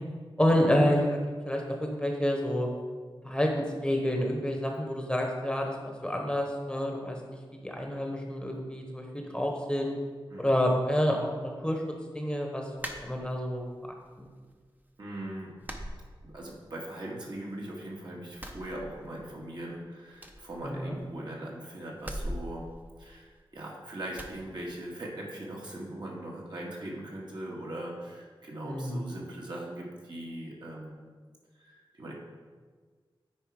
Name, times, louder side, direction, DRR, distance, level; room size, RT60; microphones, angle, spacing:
voice 1, 0.4-1.2 1.4-2.7 3.2-9.0 9.3-10.0 10.4-11.8 12.1-13.7 14.2-14.3 20.6-20.9 28.7-29.0, equal, 10° left, 1 dB, 1.0 m, -28 dB
sound 1, 12.8-13.7 14.1-14.8 15.0-15.2 15.6-16.7 17.0-17.9 18.3-19.4 19.7-19.8 20.1-21.3 22.0-23.6 24.1-24.4, equal, 20° right, 0.7 m, -42 dB
voice 2, 15.0-15.5 16.2-22.7 23.0-31.2 31.6-32.1, right 1 dB, 55° right, -3 dB, 1.8 m, -40 dB
9.4 x 4.7 x 4.8 m, 1.5 s
wide cardioid pair, 100°, 9 cm